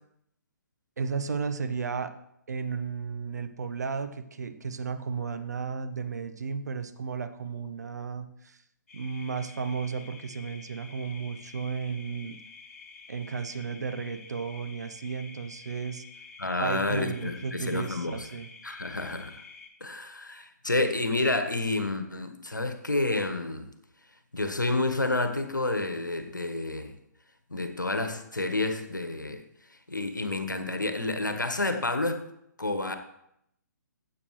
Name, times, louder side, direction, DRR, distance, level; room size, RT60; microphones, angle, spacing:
voice 1, 1.0-2.1 2.5-8.6 8.9-12.4 13.1-16.0 16.6-18.5, right 5 dB, 60° right, 9 dB, 1.0 m, -34 dB
sound 1, 8.9-19.7, left 5 dB, 50° left, 1.8 m, -49 dB
voice 2, 16.4-18.3 18.6-19.3 19.8-23.7 24.3-26.9 27.5-29.4 29.9-32.2 32.6-33.0, left 2 dB, 80° left, 8 dB, 1.3 m, -29 dB
15.5 x 8.3 x 3.2 m, 0.78 s
figure-of-eight pair, 130°, 10 cm